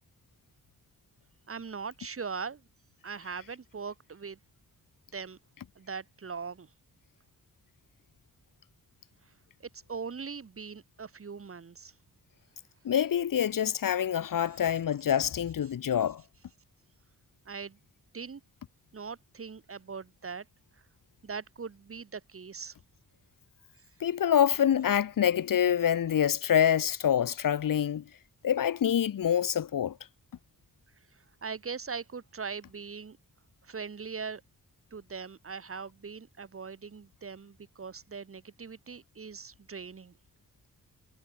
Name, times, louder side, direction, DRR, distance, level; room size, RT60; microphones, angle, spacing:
voice 1, 1.5-2.6 3.0-4.4 5.1-5.4 5.8-6.7 9.7-11.9 17.5-17.8 18.1-18.4 18.9-20.5 21.2-22.8 31.1-33.2 33.6-34.4 34.9-40.2, right 5 dB, 40° right, 6.0 m, -40 dB
voice 2, 12.8-16.2 24.0-28.0 28.4-30.0, left 9 dB, 80° left, 1.7 m, -26 dB
wide cardioid pair, 165°, 33 cm